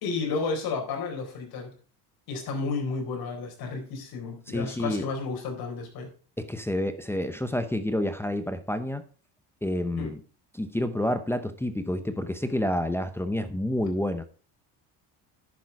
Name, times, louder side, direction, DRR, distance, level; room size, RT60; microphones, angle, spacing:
voice 1, 0.0-1.7 2.3-6.1 10.0-10.1, left 4 dB, 60° left, 2 dB, 4.1 m, -32 dB
voice 2, 4.5-5.1 6.4-9.0 9.6-10.2 10.5-14.2, left 1 dB, 5° left, 8 dB, 0.6 m, -29 dB
10.5 x 6.7 x 4.7 m, 0.38 s
cardioid pair, 140°, 42 cm